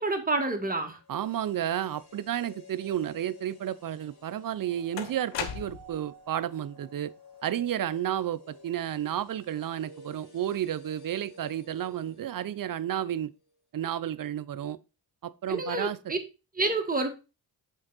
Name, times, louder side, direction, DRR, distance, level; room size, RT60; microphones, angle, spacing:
voice 1, 0.0-1.0 15.5-16.2 16.6-17.1, right 2 dB, 20° right, 1.6 m, -28 dB
sound 1, 1.0-13.1 13.4-13.5, left 1 dB, 60° left, 3.2 m, -53 dB
voice 2, 1.1-7.1 7.4-13.3 13.7-14.8 15.2-16.0, right 11 dB, 50° right, 0.5 m, -32 dB
sound 2, 4.0-4.1 5.0-6.1, left 9 dB, 85° left, 0.9 m, -36 dB
6.3 x 4.5 x 3.9 m
cardioid pair, 70°, 43 cm